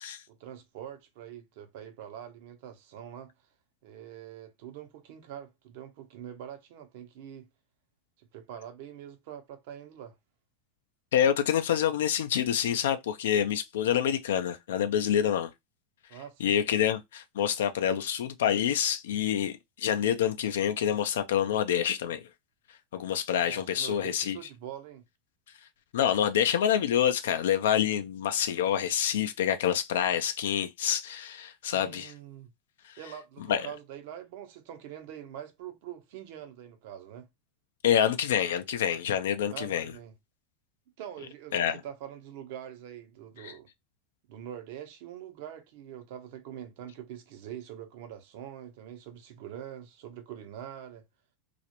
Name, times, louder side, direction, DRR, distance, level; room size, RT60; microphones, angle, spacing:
voice 1, 0.3-3.3 3.8-7.5 8.2-10.2 16.1-16.6 23.4-25.0 31.7-32.5 33.0-37.3 39.5-40.1 41.0-43.7 44.3-51.0, right 10 dB, 65° right, 0.7 m, -44 dB
voice 2, 11.1-15.5 16.4-22.2 22.9-24.4 25.9-32.1 33.5-33.7 37.8-39.9 41.5-41.8 43.4-43.5, left 9 dB, 85° left, 0.4 m, -27 dB
2.4 x 2.1 x 2.8 m
supercardioid pair, 115°, 0 cm